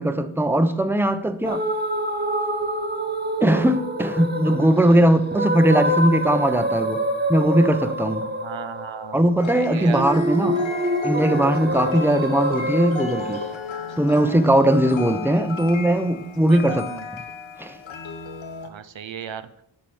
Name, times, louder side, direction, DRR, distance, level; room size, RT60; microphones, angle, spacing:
voice 1, 0.0-1.6 3.4-7.0 7.3-8.3 9.1-10.6 11.0-13.4 14.0-17.2 17.6-17.8, right 1 dB, 5° right, 0.9 m, -19 dB
sound 1, 1.4-13.5, right 1 dB, 20° right, 1.4 m, -26 dB
voice 2, 4.5-5.0 8.2-9.2 9.5-10.1 16.5-17.0 18.6-19.5, right 8 dB, 80° right, 0.7 m, -36 dB
sound 2, 9.4-18.7, left 5 dB, 85° left, 1.1 m, -34 dB
10.5 x 5.1 x 7.9 m
wide cardioid pair, 50°, 45 cm